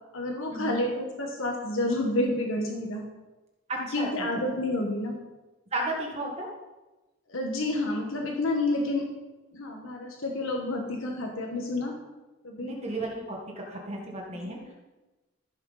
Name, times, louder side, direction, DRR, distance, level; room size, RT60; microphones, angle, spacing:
voice 1, 0.1-3.0 3.9-5.2 7.3-9.1 9.5-12.0 12.4-12.7 14.3-14.7, left 2 dB, 75° left, 1 dB, 1.5 m, -29 dB
voice 2, 3.7-4.3 5.7-6.5 12.6-14.7, right 1 dB, 30° right, -1 dB, 1.6 m, -34 dB
14.5 x 7.5 x 4.1 m, 1.1 s
head